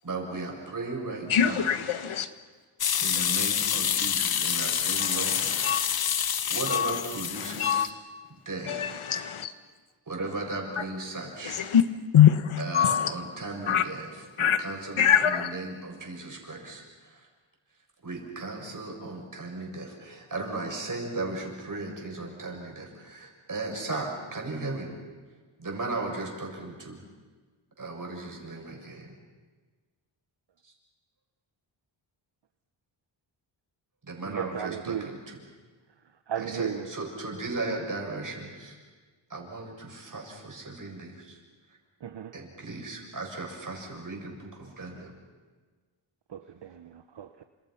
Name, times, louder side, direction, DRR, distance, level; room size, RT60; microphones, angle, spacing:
voice 1, 0.0-1.8 3.0-5.5 6.5-7.9 8.3-8.8 10.1-11.6 12.6-17.3 18.0-24.9 25.6-27.0 27.8-29.1 30.6-30.7 34.0-35.4 36.4-38.8 39.3-41.4 42.3-45.1, right 2 dB, 40° right, 1 dB, 7.2 m, -36 dB
voice 2, 1.3-2.3 5.6-5.8 6.7-7.0 7.6-7.9 8.7-9.5 11.7-11.8 12.1-13.1 13.7-13.8 14.4-14.6 15.0-15.5, left 9 dB, 80° left, 11 dB, 1.6 m, -22 dB
sound 1, 2.8-7.9, left 8 dB, 50° left, 0.9 m, -27 dB
voice 3, 34.3-35.1 36.3-36.8 42.0-42.3 46.3-47.4, right 9 dB, 60° right, 9 dB, 1.1 m, -35 dB
29.0 x 27.0 x 5.9 m, 1.4 s
cardioid pair, 90°, 48 cm